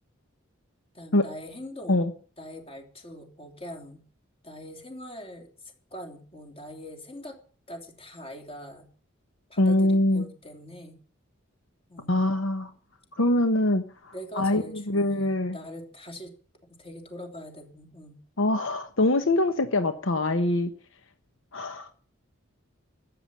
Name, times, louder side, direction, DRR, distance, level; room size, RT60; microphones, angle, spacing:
voice 1, 0.9-2.1 2.4-4.0 4.4-5.5 5.9-7.4 7.7-8.9 9.5-11.0 11.9-12.2 14.1-16.3 16.7-18.2, left 1 dB, 30° left, 4 dB, 3.3 m, -42 dB
voice 2, 9.6-10.2 12.1-12.7 13.2-15.6 18.4-20.7 21.5-21.9, left 1 dB, 70° left, 8 dB, 1.1 m, -24 dB
13.0 x 8.9 x 9.8 m, 0.43 s
head